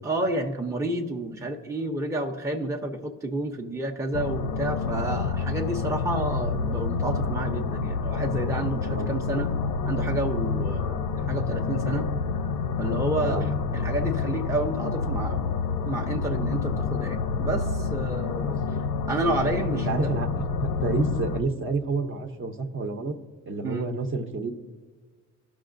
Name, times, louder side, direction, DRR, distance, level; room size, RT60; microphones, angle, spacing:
voice 1, 0.0-9.5 9.9-11.0 11.3-12.1 12.8-13.4 13.7-15.6 15.8-18.6 19.1-20.1 23.6-23.9, right 2 dB, 10° right, 2 dB, 0.6 m, -30 dB
sound 1, 4.1-21.4, left 5 dB, 90° left, 0.6 m, -28 dB
voice 2, 13.2-13.5 19.7-23.2 23.5-24.5, right 3 dB, 45° right, 5 dB, 0.8 m, -29 dB
15.0 x 6.1 x 2.5 m, 1.4 s
cardioid pair, 90°, 30 cm